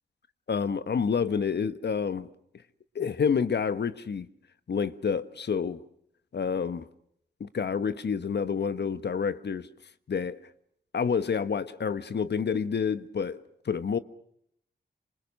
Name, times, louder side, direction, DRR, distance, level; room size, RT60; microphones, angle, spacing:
voice 1, 0.5-2.3 2.9-4.3 4.7-5.8 6.3-6.9 7.4-9.7 10.1-10.4 10.9-14.0, left 6 dB, 70° left, 1.4 m, -28 dB
27.5 x 26.0 x 6.5 m
wide cardioid pair, 85°, 18 cm